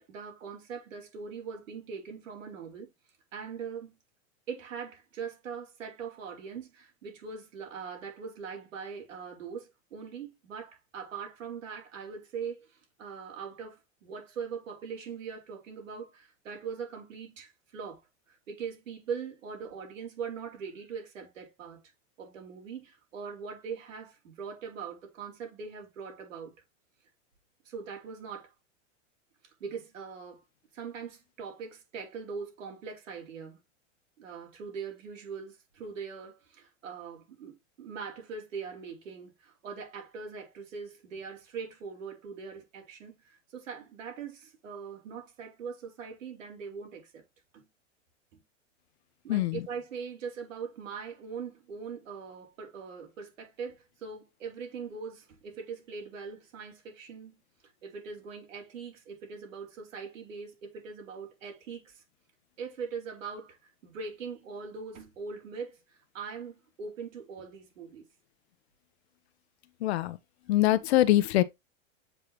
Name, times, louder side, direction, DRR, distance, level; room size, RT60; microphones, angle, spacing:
voice 1, 0.0-2.9 3.3-3.9 4.5-18.0 18.3-21.8 22.2-26.5 27.6-28.5 29.6-30.4 30.7-33.6 34.2-47.2 47.5-47.7 48.3-48.4 49.2-57.4 57.8-62.0 62.6-68.1, right 6 dB, 85° right, 4.3 m, -41 dB
voice 2, 49.3-49.6 69.8-70.2 70.5-71.4, left 15 dB, 55° left, 0.8 m, -23 dB
7.5 x 5.0 x 2.9 m
supercardioid pair, 150°, 38 cm